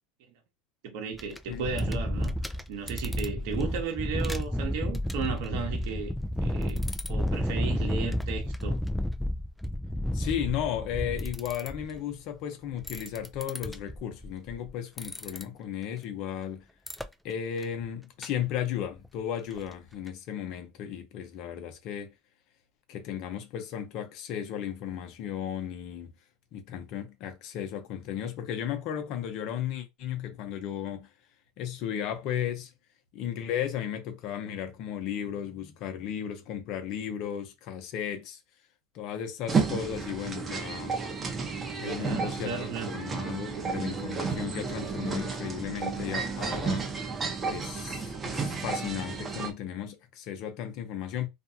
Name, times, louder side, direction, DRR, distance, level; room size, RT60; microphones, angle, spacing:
voice 1, 0.8-6.1 6.4-8.8 42.0-42.9, right 6 dB, 65° right, 0.9 m, -35 dB
sound 1, 1.1-12.0 12.7-14.7 15.0-15.4 16.9-17.0 17.6-17.8 18.2-18.3 18.5-18.6 19.0-19.1 19.5-19.6 20.1-20.2, left 1 dB, 5° left, 0.4 m, -31 dB
voice 2, 10.1-16.6 17.2-22.1 22.9-26.1 26.5-31.1 31.6-32.7 33.1-38.4 38.9-40.9 41.8-46.9 47.4-51.3, left 9 dB, 55° left, 0.7 m, -35 dB
sound 2, 39.5-49.5, right 5 dB, 25° right, 0.7 m, -32 dB
2.5 x 2.2 x 2.7 m
supercardioid pair, 110°, 0 cm